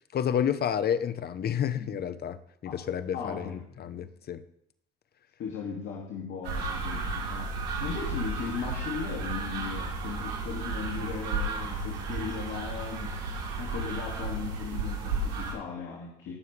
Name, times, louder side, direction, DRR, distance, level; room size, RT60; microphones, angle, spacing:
voice 1, 0.1-4.4, left 9 dB, 50° left, 13 dB, 0.9 m, -30 dB
voice 2, 3.1-4.1 5.4-7.5 7.8-13.2 13.6-16.3, left 6 dB, 70° left, -2 dB, 2.4 m, -37 dB
sound 1, 6.4-15.5, right 3 dB, 80° right, 3.5 m, -33 dB
19.5 x 6.9 x 3.4 m, 0.72 s
supercardioid pair, 75°, 21 cm